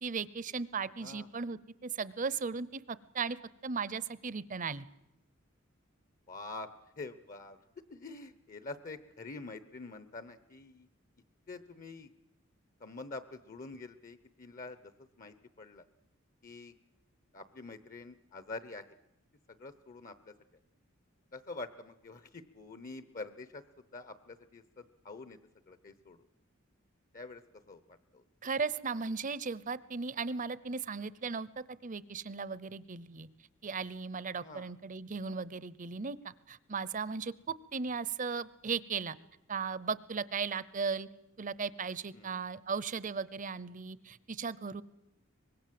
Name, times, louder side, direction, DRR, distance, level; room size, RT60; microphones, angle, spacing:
voice 1, 0.0-3.4 3.6-4.9 28.4-33.3 33.6-39.1 39.5-41.1 41.4-44.8, right 5 dB, 40° right, 18 dB, 0.8 m, -37 dB
voice 2, 6.3-6.7 7.0-10.9 11.5-12.1 12.8-14.8 15.2-15.8 16.4-16.7 17.3-18.8 19.5-20.3 21.3-23.6 23.9-25.4 25.7-26.2 27.1-27.4 27.7-28.2 34.4-34.7 42.1-42.4, left 3 dB, 40° left, 13 dB, 0.9 m, -46 dB
24.0 x 21.0 x 7.7 m, 0.90 s
head